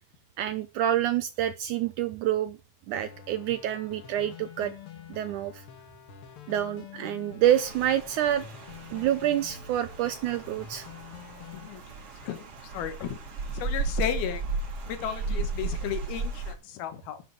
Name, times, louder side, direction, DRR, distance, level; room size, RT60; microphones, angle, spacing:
voice 1, 0.4-2.6 2.9-4.7 5.1-5.6 6.5-8.5 8.9-10.8 15.0-15.2, right 11 dB, 80° right, 10 dB, 1.8 m, -27 dB
sound 1, 3.0-11.7, left 7 dB, 60° left, 1.5 m, -47 dB
Rain, 7.4-16.5, right 4 dB, 45° right, 2.9 m, -35 dB
voice 2, 12.7-13.2 13.5-14.4 14.9-17.2, left 9 dB, 90° left, 10 dB, 3.2 m, -34 dB
12.0 x 8.5 x 4.7 m, 0.31 s
omnidirectional pair, 4.2 m